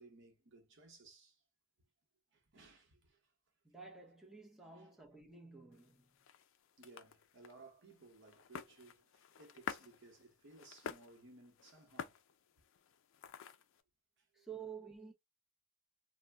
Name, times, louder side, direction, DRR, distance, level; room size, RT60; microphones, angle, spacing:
voice 1, 0.0-1.4 2.3-3.2 4.7-4.9 6.8-12.2 14.2-14.5, right 3 dB, 65° right, 0.9 m, -60 dB
voice 2, 3.6-6.1 14.3-15.1, right 6 dB, ahead, 0.6 m, -51 dB
sound 1, 5.7-13.8, left 7 dB, 70° left, 0.4 m, -51 dB
2.5 x 2.1 x 3.3 m
head